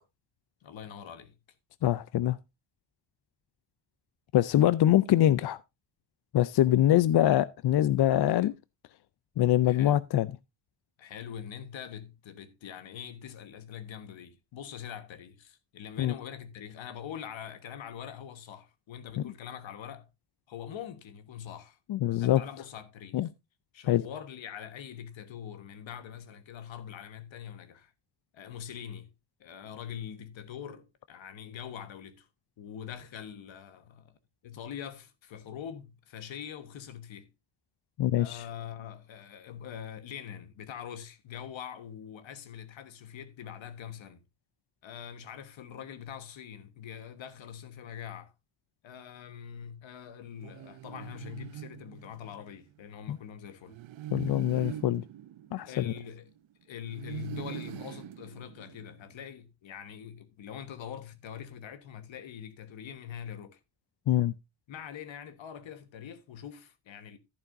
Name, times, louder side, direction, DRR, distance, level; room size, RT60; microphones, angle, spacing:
voice 1, 0.6-1.3 9.6-10.0 11.0-20.1 20.5-21.8 22.2-23.3 23.7-27.9 28.3-29.1 29.4-32.3 32.6-34.1 34.4-37.3 38.2-44.2 44.8-48.3 48.8-53.8 54.7-54.8 55.7-56.2 56.6-63.6 64.7-67.2, left 9 dB, 80° left, 1.4 m, -43 dB
voice 2, 1.8-2.4 4.3-5.6 6.3-8.5 9.4-10.3 16.0-16.1 21.9-22.4 23.1-23.3 23.9-24.0 38.0-38.4 53.1-53.2 54.1-55.0 55.5-55.9 64.1-64.3, left 13 dB, 60° left, 0.5 m, -24 dB
sound 1, 50.4-52.5 53.7-56.4 56.9-59.1, right 12 dB, 85° right, 0.7 m, -43 dB
11.5 x 10.5 x 2.6 m
cardioid pair, 100°, 45 cm